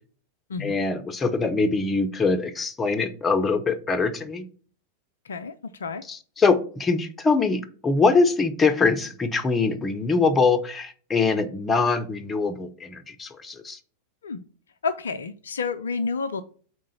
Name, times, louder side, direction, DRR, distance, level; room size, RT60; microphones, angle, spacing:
voice 1, 0.6-4.5 6.1-13.8, left 4 dB, 15° left, 8 dB, 0.7 m, -23 dB
voice 2, 14.8-16.4, left 4 dB, 70° left, 10 dB, 0.4 m, -29 dB
4.6 x 3.8 x 5.5 m, 0.43 s
figure-of-eight pair, 90°, 0 cm